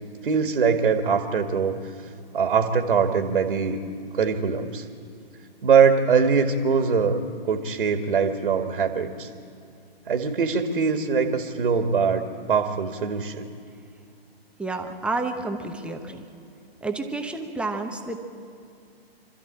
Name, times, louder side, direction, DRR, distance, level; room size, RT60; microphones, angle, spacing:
voice 1, 0.2-1.8 2.3-3.8 4.1-4.8 5.6-7.2 7.5-9.3 10.1-13.5, right 6 dB, 60° right, 5 dB, 1.9 m, -22 dB
voice 2, 14.6-16.2 16.8-18.2, right 3 dB, 5° right, 3 dB, 1.0 m, -30 dB
27.5 x 13.5 x 8.8 m, 2.4 s
figure-of-eight pair, 130°, 31 cm